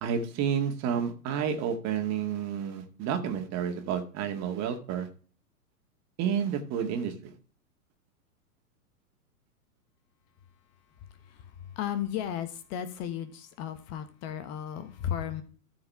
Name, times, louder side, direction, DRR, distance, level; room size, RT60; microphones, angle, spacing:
voice 1, 0.0-5.1 6.2-7.3, right 7 dB, 35° right, 2.0 m, -30 dB
voice 2, 10.7-15.4, left 10 dB, 35° left, 1.3 m, -35 dB
14.0 x 4.8 x 4.7 m
hypercardioid pair, 110°, 46 cm